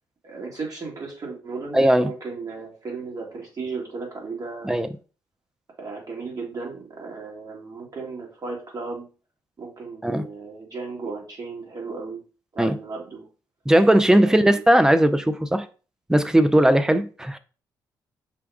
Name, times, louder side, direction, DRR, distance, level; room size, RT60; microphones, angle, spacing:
voice 1, 0.2-4.7 5.8-9.0 9.6-12.2 12.5-13.3 14.1-14.6, right 4 dB, 45° right, 2.0 m, -35 dB
voice 2, 1.7-2.1 4.6-4.9 10.0-10.2 12.6-12.8 13.7-15.7 16.1-17.4, right 1 dB, 5° right, 0.5 m, -18 dB
6.0 x 2.3 x 3.4 m
hypercardioid pair, 45°, 9 cm